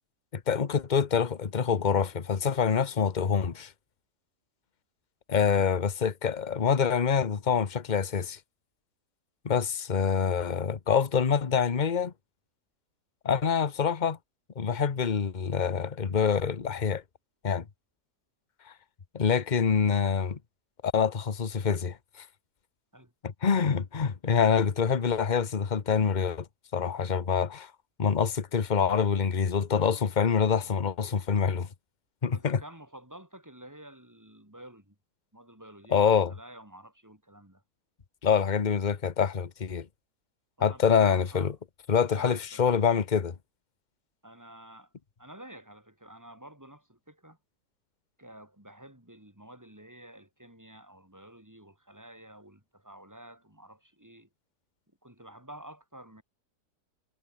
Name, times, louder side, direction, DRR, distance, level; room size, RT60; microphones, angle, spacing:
voice 1, 0.3-3.7 5.3-8.4 9.4-12.1 13.2-14.2 14.6-17.0 17.4-17.7 18.7-18.8 19.1-20.4 20.8-22.2 23.2-26.4 26.7-27.7 28.0-31.7 32.2-32.6 35.9-36.3 38.2-39.9 40.6-41.5 41.9-43.3, left 6 dB, 30° left, 1.1 m, -26 dB
voice 2, 32.3-34.9 35.3-37.6 40.6-41.5 42.1-42.9 44.2-44.9 45.2-47.4 48.2-54.3 55.0-56.2, right 1 dB, 10° right, 4.6 m, -50 dB
omnidirectional pair, 1.8 m